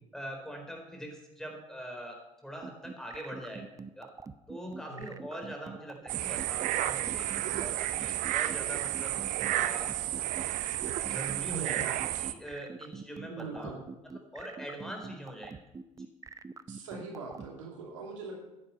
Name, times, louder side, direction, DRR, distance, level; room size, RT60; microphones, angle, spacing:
voice 1, 0.1-4.1 4.5-9.2 9.5-9.9 11.1-13.8 14.1-15.6, equal, 5° left, 2 dB, 4.2 m, -43 dB
sound 1, 2.6-17.5, right 4 dB, 20° right, 0.7 m, -44 dB
voice 2, 4.6-5.2 11.5-11.9 13.3-13.9 16.7-18.4, right 4 dB, 70° right, 1 dB, 2.7 m, -42 dB
sound 2, 6.1-12.3, right 14 dB, 50° right, 0.8 m, -32 dB
14.0 x 10.5 x 5.8 m, 1.0 s
figure-of-eight pair, 60°, 17 cm